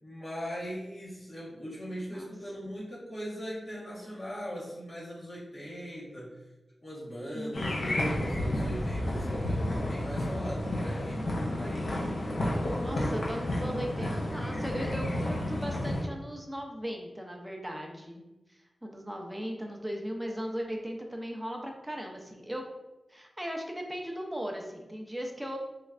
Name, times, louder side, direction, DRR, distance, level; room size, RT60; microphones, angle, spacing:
voice 1, 0.0-6.4 6.8-11.9, equal, 50° left, -8 dB, 1.4 m, -40 dB
voice 2, 7.3-7.7 12.8-18.2 18.5-22.6 23.1-25.6, equal, 10° right, 1 dB, 0.5 m, -37 dB
sound 1, 7.5-16.0, left 1 dB, 70° left, 0.7 m, -31 dB
3.2 x 3.1 x 2.4 m, 1.0 s
wide cardioid pair, 105°, 0 cm